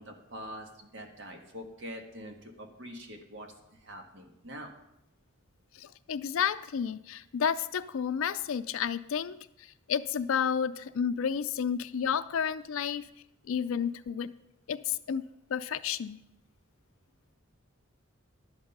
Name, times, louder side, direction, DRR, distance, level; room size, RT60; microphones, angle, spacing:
voice 1, 0.0-3.5 3.8-4.7, equal, 60° right, 3 dB, 1.5 m, -44 dB
voice 2, 5.7-13.1 13.5-14.3 14.7-15.2 15.5-16.2, left 7 dB, 70° left, 10 dB, 0.4 m, -31 dB
11.0 x 8.0 x 5.4 m, 0.84 s
head